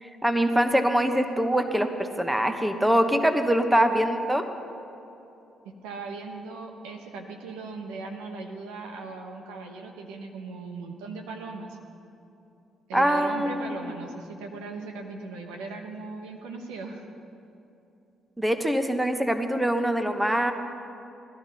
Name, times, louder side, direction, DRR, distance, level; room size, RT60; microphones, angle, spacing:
voice 1, 0.0-4.5 12.9-13.9 18.4-20.5, right 1 dB, 10° right, 7 dB, 1.0 m, -24 dB
voice 2, 5.6-11.8 12.9-17.0, right 3 dB, 80° right, 2 dB, 1.1 m, -38 dB
18.0 x 12.0 x 4.1 m, 2.8 s
hypercardioid pair, 45°, 0 cm